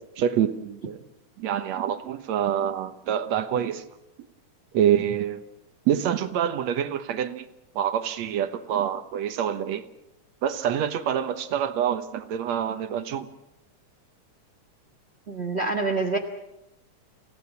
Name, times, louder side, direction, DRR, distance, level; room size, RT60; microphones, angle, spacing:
voice 1, 0.2-1.0 1.4-3.8 4.7-5.4 5.9-7.5 7.8-9.8 10.4-13.3, right 9 dB, 70° right, 2.2 m, -26 dB
voice 2, 15.3-16.2, right 3 dB, 40° right, 0.9 m, -26 dB
29.0 x 17.5 x 7.2 m
omnidirectional pair, 3.5 m